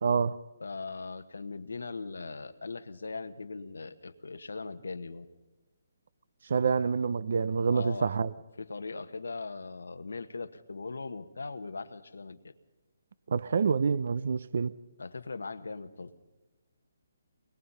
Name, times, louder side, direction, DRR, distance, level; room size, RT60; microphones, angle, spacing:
voice 1, 0.0-0.4 6.5-8.3 13.3-14.7, right 5 dB, 60° right, 0.6 m, -27 dB
voice 2, 0.6-5.3 7.7-8.1 8.6-12.5 15.0-16.1, left 4 dB, 90° left, 1.3 m, -40 dB
23.5 x 21.0 x 5.6 m
hypercardioid pair, 160°, 0 cm